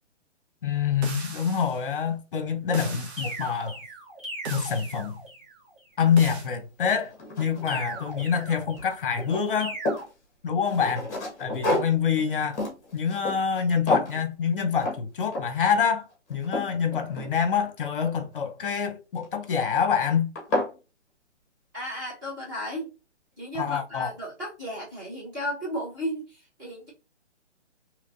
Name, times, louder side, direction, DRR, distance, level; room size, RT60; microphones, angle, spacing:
voice 1, 0.6-3.8 4.5-5.2 6.0-9.8 10.4-11.1 11.4-12.6 12.9-20.3 23.5-24.1, left 7 dB, 50° left, 0.7 m, -26 dB
sound 1, 1.0-1.8 2.7-3.4 4.5-5.0 6.2-6.5, right 2 dB, 65° right, 1.0 m, -36 dB
sound 2, 3.2-5.6 7.7-9.0 9.6-10.0, right 2 dB, 50° right, 1.7 m, -38 dB
sound 3, 6.4-6.5 7.0-8.5 8.7-10.1 10.6-13.6 13.9-14.2 14.8-15.0 15.3-15.7 16.1-17.7 19.2-19.6 20.0-20.1 20.4-20.7, left 1 dB, 15° left, 1.0 m, -31 dB
voice 2, 21.7-22.9 23.4-26.9, equal, 15° right, 1.2 m, -34 dB
3.1 x 3.0 x 2.6 m
hypercardioid pair, 175°, 36 cm